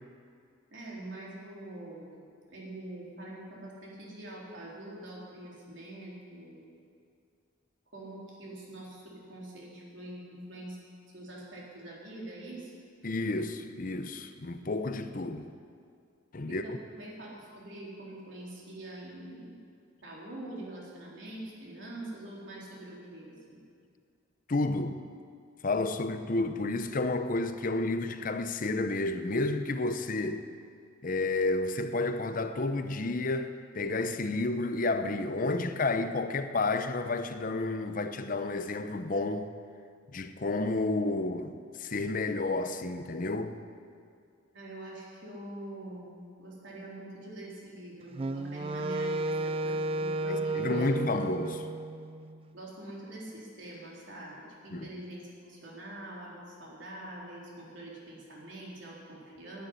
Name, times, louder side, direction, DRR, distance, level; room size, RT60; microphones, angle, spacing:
voice 1, 0.7-2.2 2.5-6.7 7.9-10.8 11.1-12.7 16.5-19.6 20.0-23.6 44.5-51.2 52.5-59.7, right 1 dB, 70° right, 3.8 m, -44 dB
voice 2, 13.0-15.5 16.3-16.8 24.5-25.0 25.6-30.5 31.0-39.5 40.1-43.6 50.3-51.6 54.7-54.9, left 2 dB, 45° left, 0.7 m, -31 dB
Wind instrument woodwind instrument, 48.1-52.4, right 2 dB, 30° right, 0.3 m, -33 dB
11.5 x 9.5 x 9.8 m
head